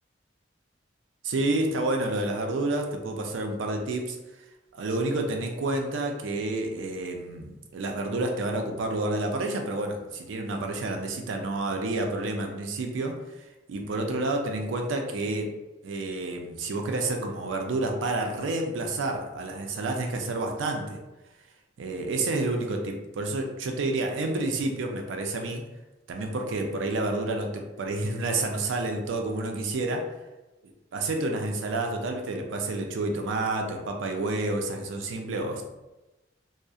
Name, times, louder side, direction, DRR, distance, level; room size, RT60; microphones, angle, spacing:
voice 1, 1.2-4.2 4.8-13.2 13.7-15.5 15.8-21.0 21.8-25.6 26.1-30.0 30.9-35.6, right 2 dB, 90° right, 3 dB, 0.4 m, -29 dB
2.6 x 2.0 x 2.3 m, 1.1 s
head